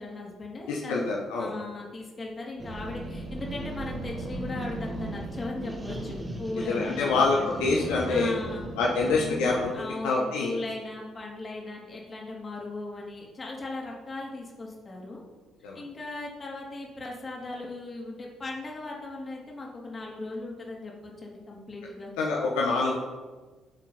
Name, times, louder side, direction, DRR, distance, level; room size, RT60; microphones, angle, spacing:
voice 1, 0.0-1.1 1.4-7.5 8.1-8.7 9.1-9.2 9.7-15.2 15.7-22.1, left 2 dB, 30° left, -2 dB, 3.4 m, -38 dB
voice 2, 0.7-1.5 6.5-8.3 8.8-10.5 15.6-15.8 22.2-23.0, left 3 dB, 65° left, -2 dB, 1.4 m, -26 dB
long painful fart, 2.6-9.8, right 1 dB, 25° right, 2.8 m, -36 dB
19.0 x 7.4 x 4.4 m, 1.3 s
figure-of-eight pair, 45°, 0 cm